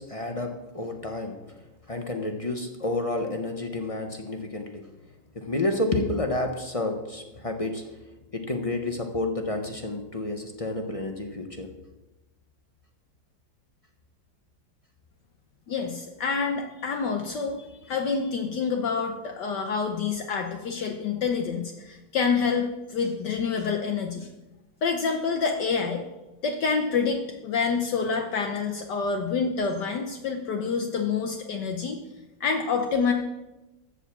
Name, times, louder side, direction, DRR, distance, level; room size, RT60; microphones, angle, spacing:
voice 1, 0.0-1.4 1.9-4.9 5.3-7.9 8.3-11.7, left 2 dB, 35° left, 4 dB, 0.6 m, -30 dB
voice 2, 15.7-24.3 24.8-26.0 26.4-32.0 32.4-33.1, left 5 dB, 65° left, 4 dB, 1.4 m, -27 dB
14.5 x 4.9 x 7.1 m, 1.0 s
omnidirectional pair, 2.1 m